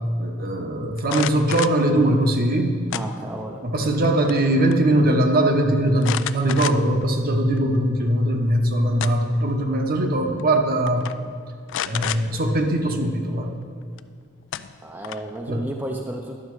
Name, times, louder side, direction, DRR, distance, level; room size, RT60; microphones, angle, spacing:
voice 1, 0.2-2.8 3.6-11.0 11.8-13.5 15.5-15.7, right 1 dB, 45° right, 4 dB, 0.9 m, -21 dB
sound 1, 1.0-1.8 2.9-3.5 3.9-4.4 4.7-4.8 6.0-7.0 7.6-7.7 8.7-9.4 10.4-10.6 10.9-11.1 11.7-12.2 14.0-14.1 14.5-15.4, left 11 dB, 65° left, 0.3 m, -30 dB
voice 2, 2.9-3.6 14.8-16.3, right 1 dB, 10° right, 1 dB, 0.5 m, -32 dB
11.0 x 6.5 x 4.7 m, 2.2 s
head